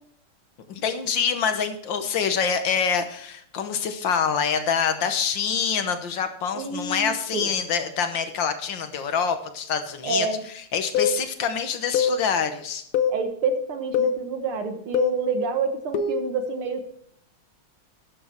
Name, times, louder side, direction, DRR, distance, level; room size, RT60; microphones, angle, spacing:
voice 1, 0.7-10.3 10.7-12.8, left 6 dB, 65° left, 9 dB, 1.6 m, -26 dB
voice 2, 6.5-7.5 10.0-10.4 13.1-16.9, right 4 dB, 80° right, 6 dB, 2.3 m, -28 dB
sound 1, 10.9-11.2 11.9-12.2 12.9-13.2 13.9-14.2 14.9-15.2 15.9-16.3, left 6 dB, 80° left, 1.7 m, -22 dB
12.0 x 8.6 x 4.4 m, 0.64 s
omnidirectional pair, 2.3 m